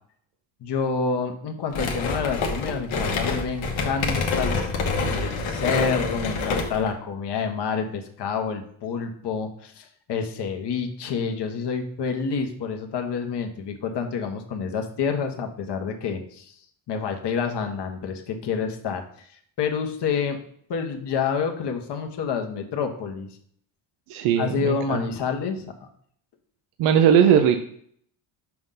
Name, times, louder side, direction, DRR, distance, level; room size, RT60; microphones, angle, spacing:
voice 1, 0.6-4.6 5.0-16.6 16.9-20.4 20.7-23.3 24.3-25.7, left 5 dB, 55° left, 5 dB, 1.2 m, -28 dB
sound 1, 1.7-6.9, left 4 dB, 70° left, 1.3 m, -27 dB
voice 2, 24.1-25.0 26.8-27.6, right 8 dB, 80° right, 6 dB, 0.7 m, -19 dB
5.8 x 5.4 x 3.8 m, 0.62 s
supercardioid pair, 75°, 49 cm